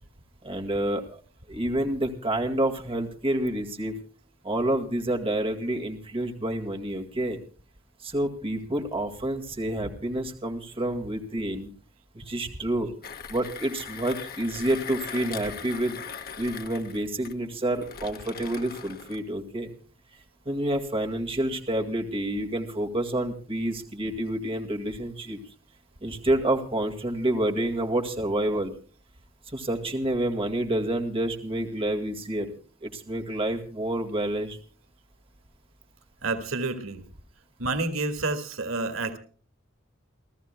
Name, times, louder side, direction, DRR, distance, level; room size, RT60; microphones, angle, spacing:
voice 1, 0.4-1.2 1.5-3.9 4.4-7.4 8.0-11.7 12.1-12.9 13.3-16.0 16.4-19.7 20.5-25.4 26.0-28.7 29.5-34.6, right 1 dB, 25° right, 3 dB, 2.0 m, -28 dB
Mechanisms, 13.0-19.2, left 6 dB, 50° left, 1.4 m, -40 dB
voice 2, 36.2-37.0 37.6-39.2, right 3 dB, 90° right, 9 dB, 1.8 m, -29 dB
30.0 x 13.5 x 2.2 m, 0.41 s
head